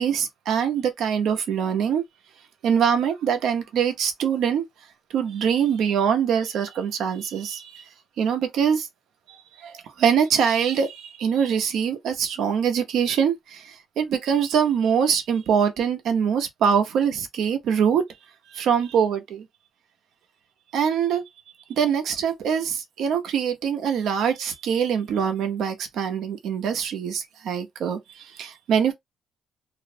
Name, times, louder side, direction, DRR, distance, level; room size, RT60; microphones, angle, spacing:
voice 1, 0.0-2.0 2.6-4.6 5.1-7.8 8.2-8.9 9.6-18.0 18.5-19.4 20.7-21.2 21.7-28.9, right 7 dB, 75° right, 0.6 m, -23 dB
2.4 x 2.0 x 2.6 m
cardioid pair, 85°, 0 cm